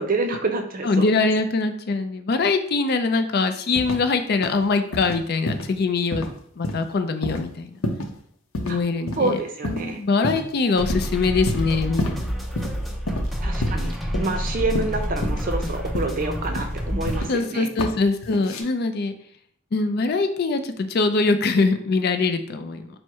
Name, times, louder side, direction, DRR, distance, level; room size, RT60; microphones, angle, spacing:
voice 1, 0.0-1.1 8.7-8.8 9.2-10.0 13.4-17.7, right 3 dB, 40° right, 5 dB, 0.6 m, -27 dB
voice 2, 0.8-6.3 6.6-7.7 8.6-9.4 9.6-12.3 17.3-19.1 19.7-22.9, left 3 dB, 50° left, 8 dB, 0.4 m, -23 dB
sound 1, 3.8-4.1 4.4-4.7 4.9-5.2 5.5-5.8 6.1-6.3 6.6-6.9 7.2-7.5 7.8-8.2 8.5-8.8 9.1-9.2 9.6-9.9 10.2-10.6 10.9-11.1 11.5-12.2 12.6-12.7 13.1-13.3 13.6-14.5 14.8-15.5 16.0-16.2 16.6-17.4 17.8-18.0 18.2-18.6, left 1 dB, 85° left, 0.7 m, -29 dB
sound 2, 10.8-17.2, equal, ahead, 0.5 m, -28 dB
4.5 x 2.1 x 4.5 m, 0.65 s
head